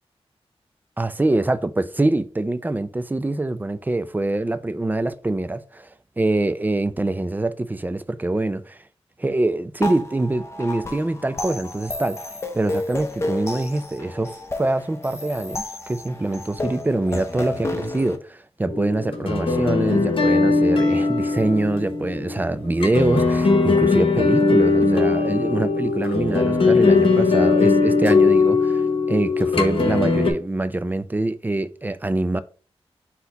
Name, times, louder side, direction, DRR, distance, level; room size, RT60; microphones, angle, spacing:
voice 1, 1.0-5.9 6.2-8.8 9.2-12.2 12.5-32.4, right 2 dB, 15° right, 0.3 m, -24 dB
sound 1, 9.8-18.2, left 2 dB, 25° left, 0.6 m, -31 dB
sound 2, 18.7-30.3, left 3 dB, 60° left, 0.9 m, -19 dB
4.1 x 2.8 x 3.8 m
wide cardioid pair, 110°, 11 cm